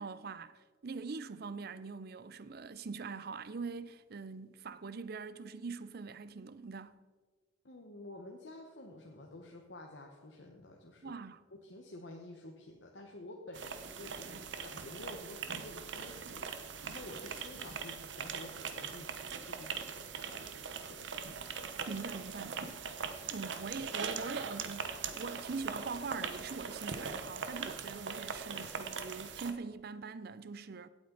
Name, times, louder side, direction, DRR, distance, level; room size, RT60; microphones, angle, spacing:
voice 1, 0.0-6.9 11.0-11.4 21.9-22.6 23.3-30.9, right 4 dB, 55° right, 0.5 m, -43 dB
voice 2, 7.6-11.1 11.6-20.6 20.9-21.4, left 2 dB, 70° left, 1.2 m, -50 dB
sound 1, 13.5-29.5, right 5 dB, 70° right, 0.9 m, -41 dB
16.5 x 8.8 x 3.9 m
head